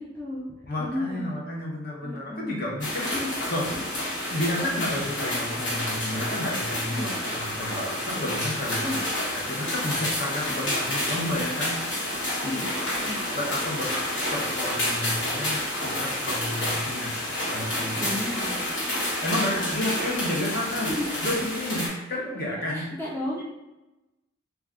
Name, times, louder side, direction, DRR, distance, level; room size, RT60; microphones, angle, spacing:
voice 1, 0.0-0.5 0.8-1.3 2.0-2.7 3.1-3.3 6.9-7.2 8.8-9.1 12.4-12.7 13.0-13.2 13.8-14.0 18.0-18.7 19.3-19.8 21.0-21.1 22.7-23.4, left 1 dB, 10° left, -6 dB, 0.4 m, -34 dB
voice 2, 0.7-3.1 3.5-3.7 4.3-9.0 9.3-12.7 13.4-13.9 14.3-17.1 17.4-18.0 19.0-20.9 21.2-22.9 23.4-23.5, left 1 dB, 50° left, -3 dB, 0.7 m, -31 dB
sound 1, 2.8-21.9, left 1 dB, 75° left, 1.2 m, -29 dB
2.4 x 2.3 x 3.4 m, 1.0 s
head